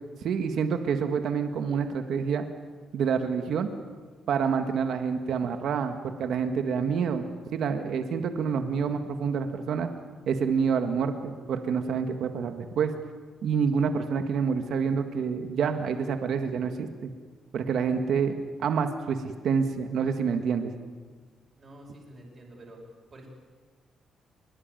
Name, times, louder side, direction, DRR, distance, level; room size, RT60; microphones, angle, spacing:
voice 1, 0.2-2.5 2.9-3.7 4.3-7.3 7.5-9.9 10.3-12.9 13.4-17.1 17.5-20.7, right 6 dB, 70° right, 7 dB, 1.8 m, -27 dB
voice 2, 21.6-22.8 23.1-23.3, right 1 dB, 30° right, -1 dB, 5.7 m, -48 dB
23.5 x 22.5 x 9.3 m, 1.5 s
cardioid pair, 145°, 0 cm